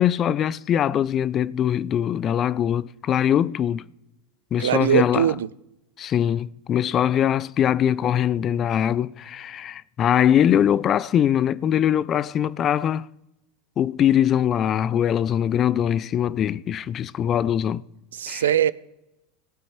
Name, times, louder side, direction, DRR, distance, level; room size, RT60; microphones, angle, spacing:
voice 1, 0.0-3.9 4.5-5.3 6.0-13.1 13.8-17.8 18.3-18.4, left 10 dB, 35° left, 0.4 m, -22 dB
voice 2, 4.6-5.5 18.1-18.7, right 10 dB, 75° right, 0.4 m, -21 dB
18.5 x 8.5 x 4.4 m
figure-of-eight pair, 80°, 0 cm